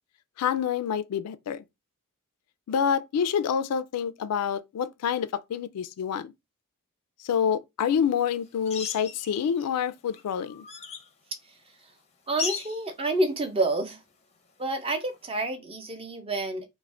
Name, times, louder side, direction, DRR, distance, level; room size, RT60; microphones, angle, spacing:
voice 1, 0.4-1.6 2.7-6.3 7.2-10.6, left 7 dB, 90° left, 0.3 m, -27 dB
sound 1, 8.6-9.7 10.1-11.1 12.4-12.9 15.1-15.2, left 6 dB, 30° left, 0.5 m, -36 dB
voice 2, 12.3-14.0 14.6-16.7, right 2 dB, 25° right, 0.5 m, -28 dB
2.4 x 2.1 x 3.2 m
head